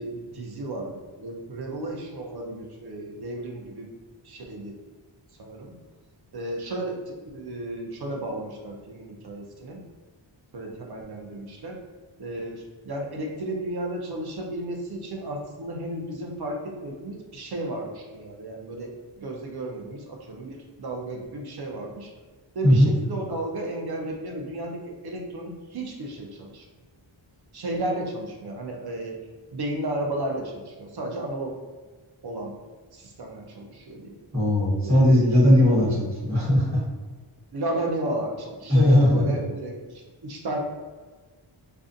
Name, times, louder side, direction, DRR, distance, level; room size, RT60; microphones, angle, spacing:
voice 1, 0.0-3.9 4.2-4.8 5.4-5.7 6.3-9.8 10.5-11.8 12.2-22.1 22.6-26.6 27.5-29.2 29.5-31.6 32.2-32.5 32.9-34.2 34.8-35.3 35.7-36.0 37.5-40.6, right 1 dB, 50° right, 0 dB, 0.6 m, -33 dB
voice 2, 34.3-36.8 38.7-39.2, left 1 dB, 35° right, -7 dB, 1.2 m, -18 dB
2.4 x 2.3 x 2.5 m, 1.4 s
wide cardioid pair, 70°, 49 cm